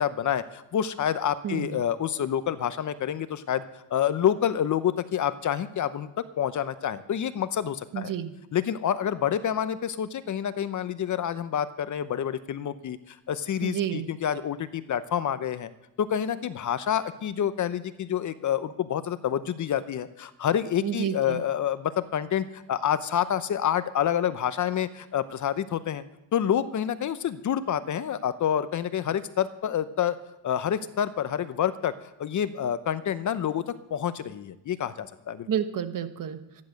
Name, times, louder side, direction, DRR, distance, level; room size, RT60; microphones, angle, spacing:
voice 1, 0.0-3.6 3.9-6.1 6.4-8.1 8.5-15.7 16.0-26.0 26.3-30.2 30.4-35.5, left 9 dB, 40° left, 13 dB, 0.8 m, -28 dB
voice 2, 1.4-1.9 7.9-8.3 13.6-14.1 20.8-21.4 35.5-36.6, right 9 dB, 45° right, 10 dB, 1.3 m, -30 dB
14.0 x 10.5 x 6.4 m, 0.91 s
cardioid pair, 105°, 44 cm